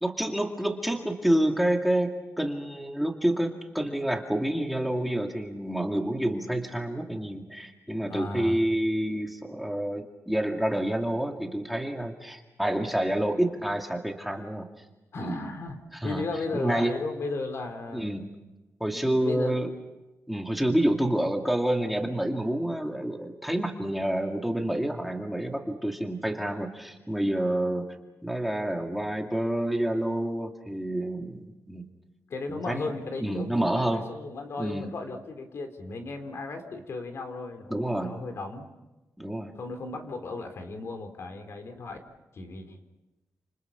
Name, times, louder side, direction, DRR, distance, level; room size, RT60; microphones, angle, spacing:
voice 1, 0.0-14.7 15.2-15.4 16.0-16.2 16.5-16.9 17.9-18.3 18.8-19.7 20.3-27.8 28.2-31.9 32.5-32.9 33.2-34.1 34.6-34.9 37.7-38.1 39.2-39.5, right 1 dB, ahead, 2 dB, 2.2 m, -28 dB
voice 2, 8.1-8.6 15.1-15.8 16.0-18.0 18.9-19.6 32.3-38.7 39.6-42.0 42.3-42.8, left 3 dB, 55° left, 6 dB, 4.0 m, -35 dB
29.5 x 28.0 x 5.9 m, 1.0 s
wide cardioid pair, 150°, 5 cm